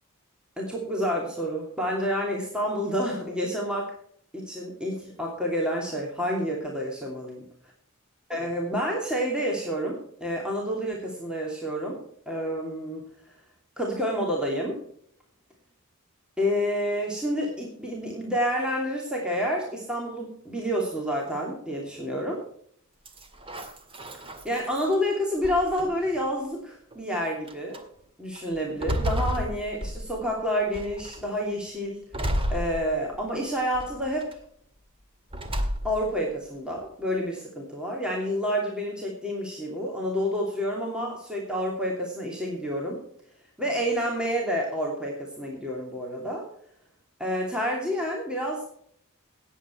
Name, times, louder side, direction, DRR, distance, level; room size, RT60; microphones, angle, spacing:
voice 1, 0.6-4.0 4.3-7.4 8.3-12.0 12.3-13.1 13.8-14.8 16.4-22.4 24.4-27.8 28.2-34.4 35.8-43.0 43.6-46.4 47.2-48.7, equal, 5° right, -3 dB, 2.8 m, -29 dB
sound 1, 23.0-24.9 25.4-26.2 26.9-27.0 27.5-27.8 28.3-30.3 30.7-31.3 32.1-33.3 33.7-34.3 35.3-36.1, equal, 25° right, 1.9 m, -31 dB
18.0 x 8.4 x 4.5 m, 0.65 s
head